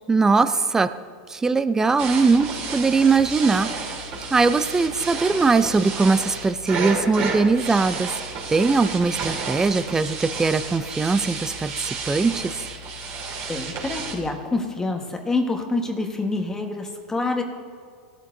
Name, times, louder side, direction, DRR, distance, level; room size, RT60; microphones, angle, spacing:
voice 1, 0.1-0.9 1.3-3.7 4.3-8.1 8.5-12.5, right 4 dB, 10° right, 12 dB, 0.5 m, -20 dB
sound 1, 2.0-14.1, right 4 dB, 50° right, 3.5 m, -31 dB
voice 2, 13.5-17.4, left 3 dB, 10° left, 3 dB, 1.4 m, -26 dB
19.0 x 13.5 x 2.8 m, 2.1 s
supercardioid pair, 125°, 5 cm